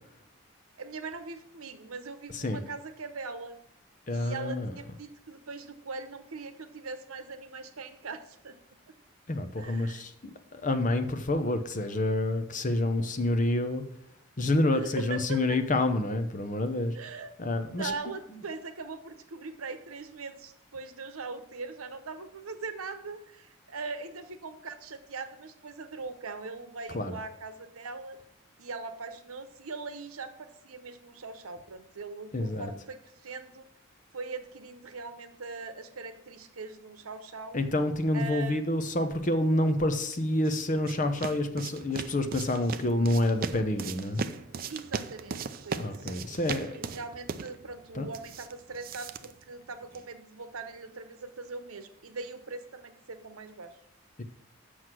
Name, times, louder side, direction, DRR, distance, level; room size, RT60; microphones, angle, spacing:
voice 1, 0.8-3.6 4.1-8.6 8.9-9.0 9.6-10.0 14.6-15.6 16.9-17.3 17.8-28.2 28.6-33.7 34.1-37.6 38.1-38.7 44.7-45.4 45.6-46.2 46.6-53.8, right 4 dB, 85° right, 9 dB, 0.9 m, -41 dB
voice 2, 2.3-2.6 4.1-4.9 9.3-10.1 10.5-13.8 14.4-17.0 17.4-17.9 18.3-18.4 26.9-27.2 32.3-32.7 37.5-44.2 45.8-46.7 47.9-48.1 54.2-54.3, left 1 dB, 35° left, 8 dB, 0.8 m, -28 dB
sound 1, 40.1-50.1, right 5 dB, 40° right, 0.4 m, -39 dB
7.8 x 6.3 x 6.1 m, 0.73 s
head